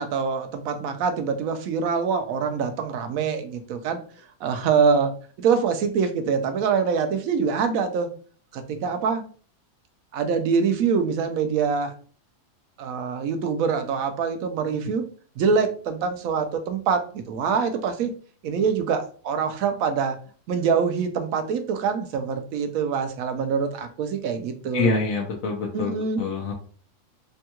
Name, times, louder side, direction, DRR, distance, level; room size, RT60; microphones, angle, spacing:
voice 1, 0.0-4.0 4.4-5.1 5.4-8.1 8.5-9.2 10.1-11.9 12.8-15.1 15.4-18.1 18.4-20.2 20.5-24.9 25.7-26.2, right 6 dB, 85° right, 7 dB, 1.0 m, -24 dB
voice 2, 24.7-26.5, left 3 dB, 80° left, -1 dB, 1.1 m, -26 dB
3.5 x 2.3 x 2.8 m, 0.42 s
omnidirectional pair, 1.4 m